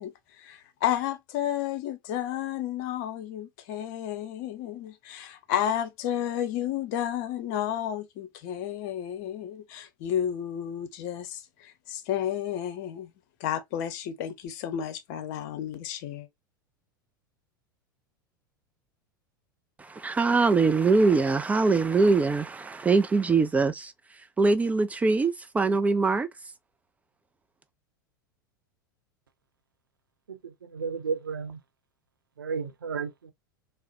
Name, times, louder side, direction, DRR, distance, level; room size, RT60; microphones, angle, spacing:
voice 1, 0.0-13.1 13.4-16.3, left 10 dB, 50° left, 0.8 m, -32 dB
voice 2, 19.8-23.9 24.4-26.3, right 4 dB, 15° right, 0.3 m, -23 dB
voice 3, 30.3-31.6 32.4-33.3, right 5 dB, 75° right, 0.6 m, -33 dB
3.9 x 2.0 x 2.5 m
figure-of-eight pair, 85°, 11 cm